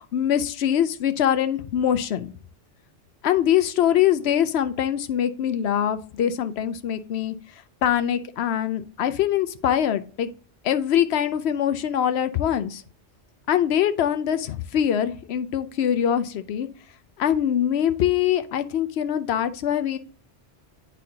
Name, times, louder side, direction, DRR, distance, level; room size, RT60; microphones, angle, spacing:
voice 1, 0.0-2.3 3.2-7.4 7.8-10.3 10.6-12.8 13.5-16.7 17.2-20.0, left 10 dB, 65° left, 11 dB, 0.8 m, -23 dB
9.0 x 4.2 x 2.8 m, 0.42 s
omnidirectional pair, 1.2 m